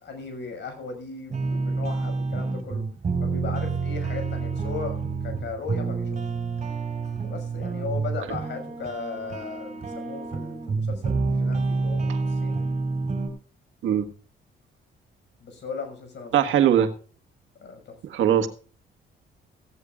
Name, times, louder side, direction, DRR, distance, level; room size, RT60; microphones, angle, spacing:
voice 1, 0.0-2.8 3.2-6.1 7.2-12.6 15.4-16.7 17.6-18.0, left 4 dB, 65° left, 7 dB, 6.1 m, -37 dB
sound 1, 1.3-13.3, right 4 dB, 35° right, 4.4 m, -28 dB
voice 2, 16.3-16.9 18.0-18.5, right 10 dB, 80° right, 6 dB, 1.7 m, -20 dB
16.5 x 16.0 x 2.5 m, 0.41 s
cardioid pair, 90°, 20 cm